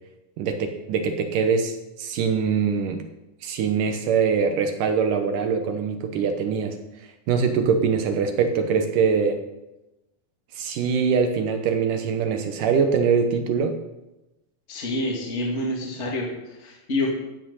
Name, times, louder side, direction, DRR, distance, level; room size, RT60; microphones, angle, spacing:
voice 1, 0.4-3.0 3.4-6.8 7.3-9.4 10.6-13.8, right 6 dB, 75° right, 6 dB, 2.5 m, -23 dB
voice 2, 14.7-17.1, left 1 dB, 20° left, -3 dB, 2.4 m, -27 dB
15.0 x 8.7 x 5.6 m, 0.98 s
omnidirectional pair, 4.0 m